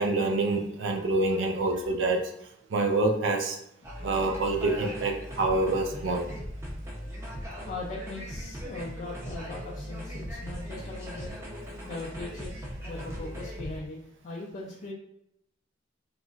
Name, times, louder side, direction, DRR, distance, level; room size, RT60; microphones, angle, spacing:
voice 1, 0.0-2.3 2.7-3.6 4.0-6.3, right 2 dB, 65° right, 4 dB, 0.4 m, -26 dB
sound 1, 3.8-13.8, equal, 15° right, 0.6 m, -39 dB
voice 2, 6.8-11.3 11.8-12.5 12.8-14.9, left 2 dB, 40° left, -3 dB, 0.3 m, -40 dB
2.9 x 2.5 x 2.3 m, 0.78 s
head